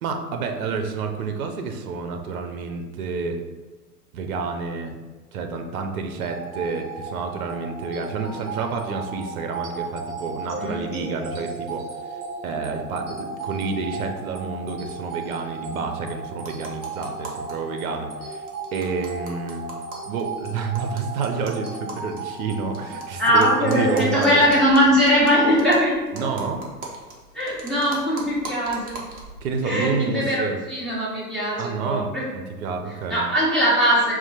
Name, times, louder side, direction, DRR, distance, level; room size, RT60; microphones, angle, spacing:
voice 1, 0.0-3.4 4.1-5.0 5.3-11.9 12.4-18.4 18.7-19.7 20.0-24.4 26.1-26.6 29.4-30.6 31.6-33.2, right 4 dB, 60° right, 5 dB, 0.6 m, -29 dB
sound 1, 6.2-24.6, right 3 dB, 40° right, 1.2 m, -35 dB
sound 2, 16.4-17.5 17.8-17.9 18.1-18.2 18.5-23.0 23.4-29.4, right 3 dB, 20° right, 0.6 m, -40 dB
voice 2, 23.2-26.3 27.3-28.9 29.6-32.3 33.1-34.1, equal, ahead, -8 dB, 1.3 m, -20 dB
4.2 x 2.2 x 4.3 m, 1.3 s
figure-of-eight pair, 100°, 48 cm